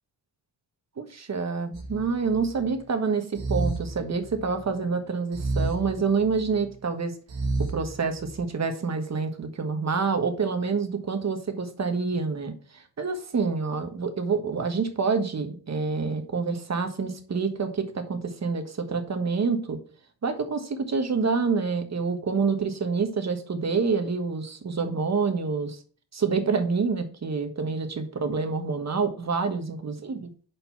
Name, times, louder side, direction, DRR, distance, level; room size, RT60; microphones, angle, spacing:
voice 1, 1.0-7.1 7.6-19.8 20.2-25.8 26.1-30.2, right 5 dB, 40° right, 7 dB, 1.3 m, -27 dB
sound 1, 1.7-2.7 3.4-4.6 5.3-6.6 7.3-8.5, right 3 dB, 75° right, 1.6 m, -31 dB
5.2 x 4.5 x 5.8 m, 0.41 s
cardioid pair, 70°, 43 cm